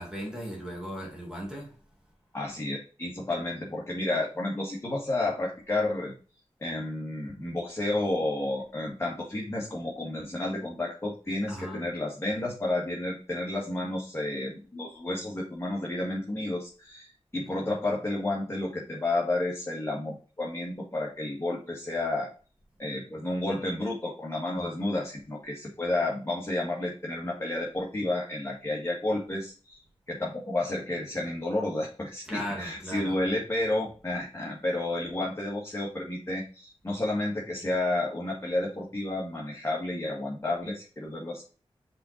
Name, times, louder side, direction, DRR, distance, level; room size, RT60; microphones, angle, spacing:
voice 1, 0.0-1.8 11.5-11.9 32.2-33.2, equal, 5° right, 2.1 m, -37 dB
voice 2, 2.3-6.1 6.6-22.3 22.8-29.8 30.1-41.4, left 2 dB, 25° left, 1.7 m, -31 dB
5.6 x 3.9 x 4.3 m
wide cardioid pair, 60°, 10 cm